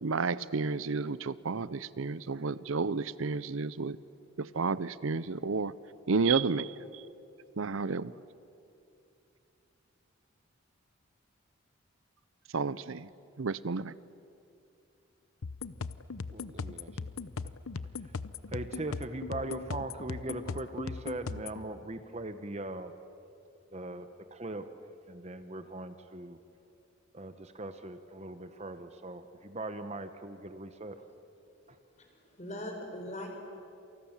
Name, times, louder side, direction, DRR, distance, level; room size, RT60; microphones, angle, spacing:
voice 1, 0.0-4.0 4.4-5.7 6.1-6.7 7.6-8.1 12.5-13.1 13.4-13.9, right 4 dB, 75° right, 0.7 m, -31 dB
sound 1, 15.4-21.6, left 4 dB, 90° left, 0.8 m, -39 dB
voice 2, 16.3-17.0 17.4-17.5 18.0-18.1 18.5-23.0 23.7-24.6 25.1-26.4 27.1-31.0 31.7-31.8, right 2 dB, 30° right, 1.0 m, -40 dB
voice 3, 32.0-33.3, left 1 dB, 35° left, 4.9 m, -41 dB
29.0 x 28.0 x 7.3 m
head